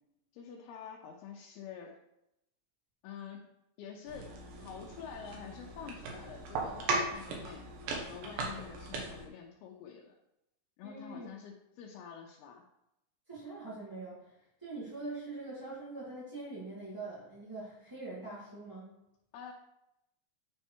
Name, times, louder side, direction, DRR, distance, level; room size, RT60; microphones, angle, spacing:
voice 1, 0.3-2.0 3.0-3.5 3.8-4.3 4.6-7.6 8.1-10.1 10.8-12.6 19.3-19.5, left 7 dB, 85° left, -1 dB, 2.7 m, -47 dB
sound 1, 4.1-9.3, right 3 dB, 70° right, 2.8 m, -38 dB
voice 2, 10.8-11.3 13.3-18.9, right 2 dB, 10° right, -9 dB, 0.9 m, -43 dB
8.9 x 3.3 x 4.5 m, 0.85 s
omnidirectional pair, 4.4 m